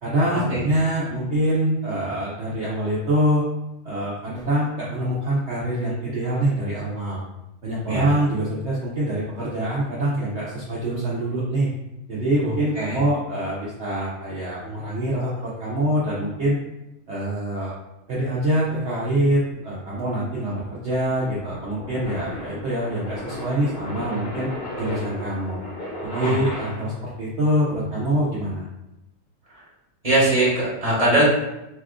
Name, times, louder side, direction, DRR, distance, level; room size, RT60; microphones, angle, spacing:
voice 1, 0.0-3.4 3.8-7.2 7.6-11.7 12.1-16.6 17.1-17.7 18.1-24.5 24.8-25.6 26.0-28.6, right 1 dB, 65° right, -6 dB, 0.7 m, -24 dB
sound 1, 19.5-27.1, left 1 dB, 40° left, 0.8 m, -35 dB
voice 2, 30.0-31.2, right 1 dB, 30° right, -7 dB, 0.9 m, -20 dB
2.8 x 2.3 x 3.5 m, 0.91 s
omnidirectional pair, 1.7 m